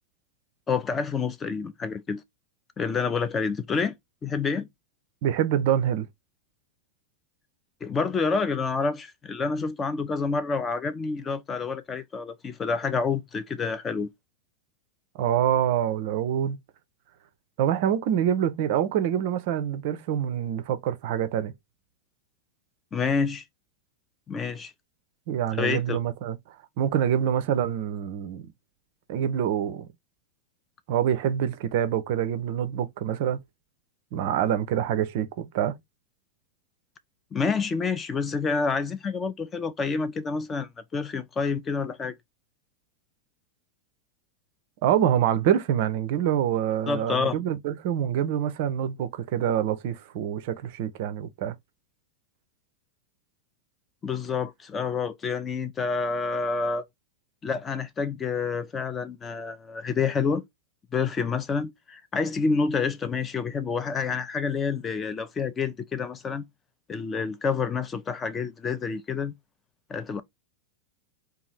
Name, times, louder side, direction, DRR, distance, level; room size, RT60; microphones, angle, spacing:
voice 1, 0.7-2.2 2.8-3.9 4.2-4.7 7.8-14.1 22.9-23.4 24.3-24.7 25.6-26.0 37.3-42.1 46.9-47.4 54.0-56.9 57.4-60.4 60.9-66.4 66.9-69.3 69.9-70.2, left 5 dB, 20° left, 0.4 m, -28 dB
voice 2, 5.2-6.1 15.1-16.6 17.6-21.5 25.3-26.4 26.8-28.5 29.1-29.9 30.9-33.4 34.1-35.8 44.8-51.5, right 10 dB, 50° right, 0.4 m, -26 dB
2.6 x 2.3 x 3.1 m
figure-of-eight pair, 90°, 0 cm